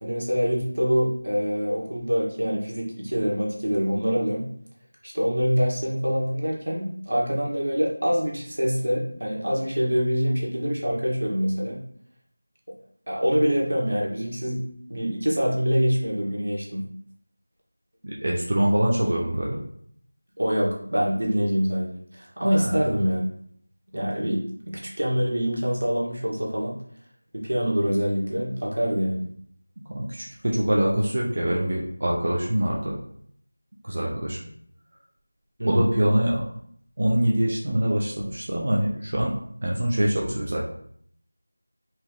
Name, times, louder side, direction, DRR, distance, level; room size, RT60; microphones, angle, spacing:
voice 1, 0.0-4.5 5.0-11.8 13.1-14.6 14.9-16.8 20.4-23.3 23.9-24.4 24.7-26.7 27.3-29.3 35.6-35.9, equal, 85° right, -3 dB, 1.9 m, -25 dB
voice 2, 18.0-19.6 22.5-22.9 29.9-33.0 33.8-34.4 35.6-36.5 37.0-39.4 39.6-40.6, right 1 dB, 35° right, -3 dB, 0.7 m, -24 dB
4.3 x 3.1 x 3.9 m, 0.65 s
figure-of-eight pair, 180°, 0 cm